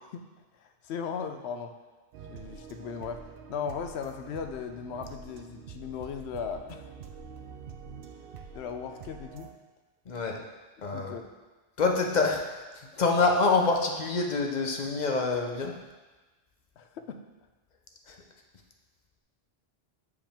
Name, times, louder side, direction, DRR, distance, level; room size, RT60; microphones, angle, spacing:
voice 1, 0.6-1.7 2.3-3.2 3.5-6.9 8.5-9.5 10.9-11.3 16.8-17.2, left 6 dB, 90° left, 6 dB, 0.9 m, -37 dB
sound 1, 2.1-9.5, right 6 dB, 65° right, 0.7 m, -46 dB
voice 2, 10.1-10.4 10.8-11.2 11.8-15.7 18.1-18.2, left 3 dB, 50° left, 1 dB, 0.7 m, -26 dB
7.3 x 4.9 x 3.4 m, 1.2 s
omnidirectional pair, 1.1 m